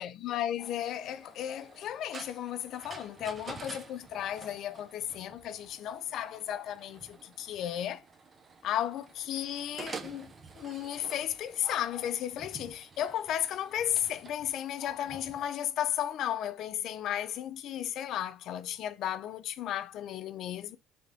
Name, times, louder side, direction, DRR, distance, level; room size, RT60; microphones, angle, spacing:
voice 1, 0.0-8.0 8.6-20.8, left 11 dB, 55° left, 0.4 m, -34 dB
sound 1, 0.6-15.5, right 4 dB, 25° right, 0.5 m, -49 dB
3.3 x 2.6 x 3.4 m
cardioid pair, 130°, 0 cm